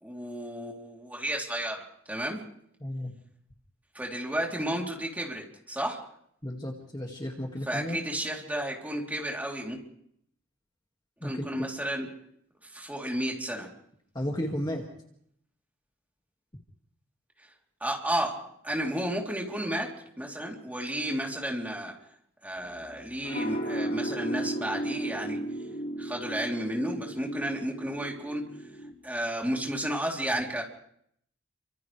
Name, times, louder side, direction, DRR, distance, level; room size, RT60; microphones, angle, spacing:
voice 1, 0.0-2.4 3.9-6.0 7.7-9.8 11.2-12.1 12.7-13.7 17.4-17.5 17.8-22.0 22.4-25.4 26.0-28.7 29.0-30.6, right 1 dB, 10° right, -1 dB, 3.4 m, -32 dB
voice 2, 2.8-3.1 6.4-8.0 11.2-11.7 14.1-14.9, equal, 20° left, 0 dB, 2.1 m, -33 dB
sound 1, 22.6-28.9, right 1 dB, 55° left, 4.7 m, -35 dB
30.0 x 25.5 x 3.4 m, 0.70 s
head